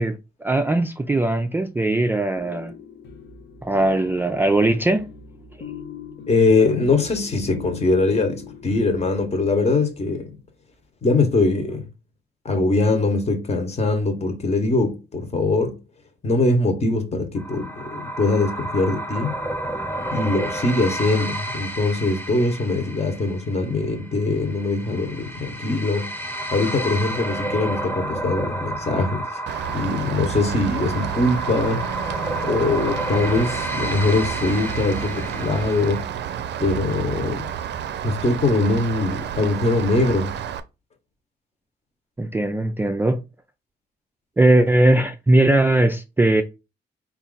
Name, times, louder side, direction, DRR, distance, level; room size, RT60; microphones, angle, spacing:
voice 1, 0.0-2.7 3.6-5.1 42.2-43.2 44.4-46.4, right 1 dB, 10° right, 0.3 m, -19 dB
sound 1, 2.0-10.0, left 6 dB, 90° left, 0.8 m, -41 dB
voice 2, 6.3-10.4 11.0-11.9 12.4-15.8 16.2-19.4 20.1-26.1 26.5-29.4 29.7-31.9 32.4-36.1 36.6-37.5 38.0-40.3, left 3 dB, 40° left, 1.0 m, -22 dB
sound 2, 17.4-36.0, right 1 dB, 10° left, 0.9 m, -31 dB
Rain, 29.5-40.6, right 9 dB, 80° right, 0.5 m, -30 dB
4.1 x 2.4 x 3.8 m
cardioid pair, 110°, 17 cm